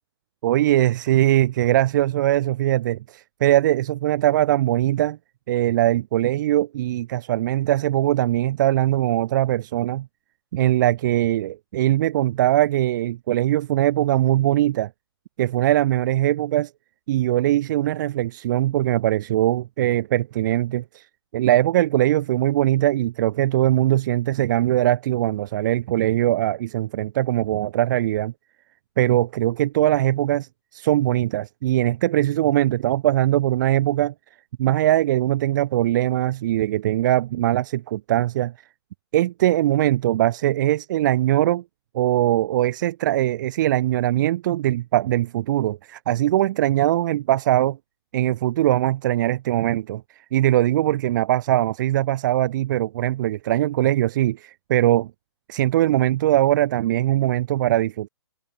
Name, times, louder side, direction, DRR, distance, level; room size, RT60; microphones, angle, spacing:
voice 1, 0.4-5.2 5.5-10.1 10.5-14.9 15.4-16.7 17.1-21.1 21.3-28.3 29.0-34.1 34.6-38.5 39.1-41.6 41.9-47.8 48.1-55.1 55.5-58.1, right 14 dB, 45° right, 3.3 m, -21 dB
hypercardioid pair, 135°, 15 cm